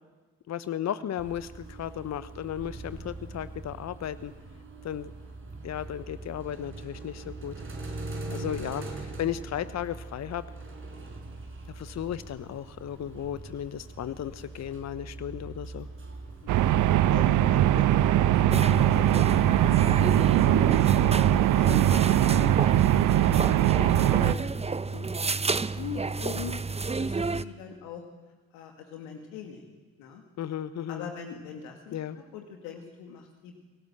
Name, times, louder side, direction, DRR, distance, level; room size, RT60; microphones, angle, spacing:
voice 1, 0.5-4.3 4.8-5.1 5.6-7.5 8.3-10.5 11.7-15.9 30.4-31.1 31.9-32.2, left 10 dB, 55° left, 14 dB, 1.0 m, -35 dB
sound 1, 1.2-18.2, right 2 dB, 40° right, 5.8 m, -42 dB
voice 2, 8.4-8.7 16.4-16.6 17.1-20.0 20.3-22.9 23.4-26.6 27.0-28.0 28.5-29.7 30.0-30.2 30.9-32.0 32.3-33.5, left 6 dB, 75° left, 3 dB, 2.3 m, -42 dB
sound 2, 16.5-24.3, right 12 dB, 65° right, 1.0 m, -21 dB
sound 3, 18.5-27.4, right 4 dB, 20° right, 0.9 m, -32 dB
24.5 x 17.5 x 7.7 m, 1.3 s
hypercardioid pair, 40°, 33 cm